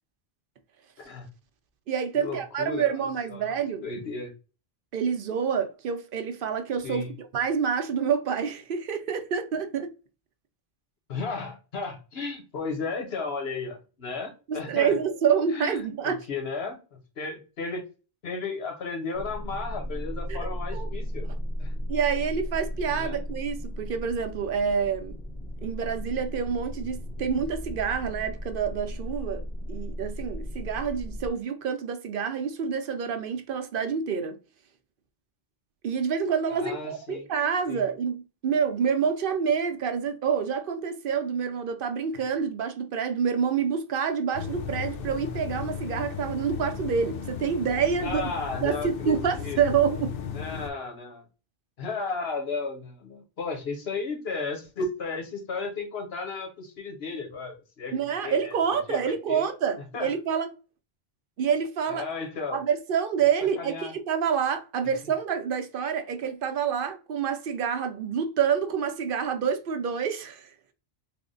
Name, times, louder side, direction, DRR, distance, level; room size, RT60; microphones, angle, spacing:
voice 1, 1.0-1.3 2.1-2.9 3.3-3.5 3.8-4.3 6.8-7.1 11.1-15.0 15.5-17.8 18.2-21.3 21.6-21.7 22.9-23.2 36.5-37.3 37.7-37.8 42.1-42.2 48.0-49.6 50.3-51.2 51.8-58.6 58.9-59.4 59.9-60.1 61.9-62.6 63.6-63.9, left 4 dB, 80° left, 1.3 m, -34 dB
voice 2, 1.9-3.8 4.9-7.0 7.3-9.9 14.5-16.2 20.3-20.9 21.9-25.1 25.6-29.4 29.7-34.4 35.8-48.2 48.6-50.1 57.9-60.5 61.4-62.0 62.5-70.5, right 7 dB, 65° right, 0.7 m, -27 dB
sound 1, 19.1-31.3, equal, 5° left, 0.8 m, -35 dB
sound 2, 44.3-50.7, left 7 dB, 65° left, 0.8 m, -35 dB
3.5 x 2.1 x 3.7 m
omnidirectional pair, 1.0 m